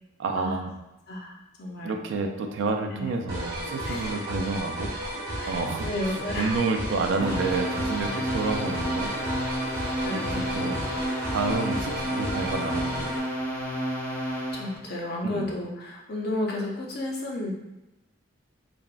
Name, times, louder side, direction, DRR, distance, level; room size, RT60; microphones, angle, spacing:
voice 1, 0.2-0.7 1.8-4.9 5.5-5.9 6.4-9.1 10.1-10.8 11.3-13.1 15.2-15.5, right 4 dB, 70° right, 5 dB, 0.3 m, -29 dB
voice 2, 1.1-1.9 2.9-3.1 3.8-4.1 5.4-6.5 8.1-8.3 10.0-10.9 14.5-17.5, left 1 dB, 50° left, -1 dB, 0.5 m, -33 dB
sound 1, 3.3-13.2, equal, 50° right, 0.7 m, -33 dB
sound 2, 7.2-14.8, equal, 80° left, 0.9 m, -31 dB
3.3 x 2.0 x 2.4 m, 0.95 s
head